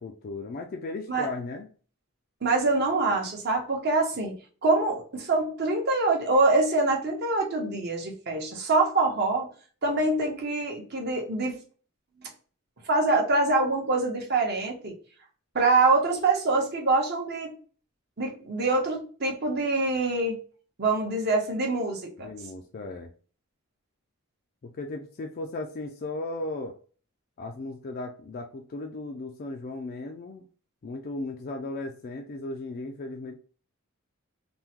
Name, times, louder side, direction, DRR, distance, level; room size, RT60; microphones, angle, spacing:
voice 1, 0.0-1.7 22.2-23.1 24.6-26.7 27.4-30.5 30.8-33.4, left 2 dB, 45° left, 3 dB, 0.3 m, -36 dB
voice 2, 2.4-4.3 4.6-9.5 9.8-11.6 12.8-14.9 15.5-17.5 18.2-20.4 20.8-22.3, right 3 dB, 50° right, 0 dB, 0.9 m, -25 dB
3.5 x 2.1 x 2.9 m, 0.40 s
head